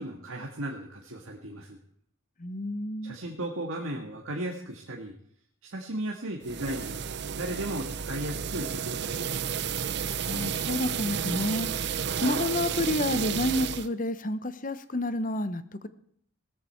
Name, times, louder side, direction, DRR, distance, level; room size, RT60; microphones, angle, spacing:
voice 1, 0.0-1.8 3.0-5.1 5.6-7.0 7.4-9.5, right 1 dB, 85° right, 0 dB, 1.8 m, -36 dB
voice 2, 2.4-3.2 10.2-15.9, left 1 dB, 40° left, 12 dB, 1.0 m, -30 dB
sound 1, 6.4-13.9, right 7 dB, 55° right, 0.6 m, -32 dB
17.0 x 13.5 x 4.5 m, 0.63 s
head